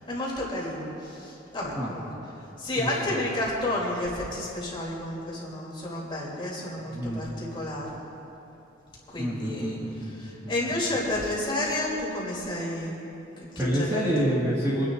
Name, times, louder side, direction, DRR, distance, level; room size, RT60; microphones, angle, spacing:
voice 1, 0.1-2.1 2.6-8.0 9.1-9.8 10.5-13.0 13.4-14.1, left 1 dB, 25° left, -6 dB, 3.3 m, -31 dB
voice 2, 1.7-2.0 2.8-3.2 6.8-7.2 9.2-10.8 13.6-14.9, equal, 15° right, -8 dB, 2.0 m, -29 dB
26.5 x 10.5 x 2.6 m, 2.9 s
head